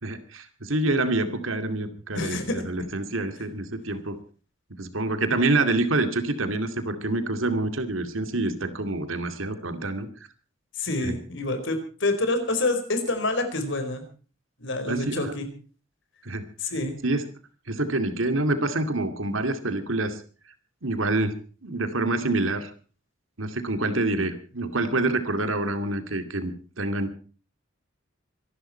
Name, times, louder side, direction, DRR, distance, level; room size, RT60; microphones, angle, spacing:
voice 1, 0.0-4.2 4.7-10.1 11.0-11.2 14.9-15.3 16.2-16.5 17.0-17.2 17.7-20.2 20.8-22.7 23.4-27.1, right 2 dB, 80° right, 9 dB, 2.3 m, -27 dB
voice 2, 2.1-2.6 10.8-14.0 14.6-15.5 16.6-17.0, left 2 dB, 65° left, 8 dB, 4.7 m, -27 dB
25.5 x 12.0 x 4.4 m, 0.39 s
head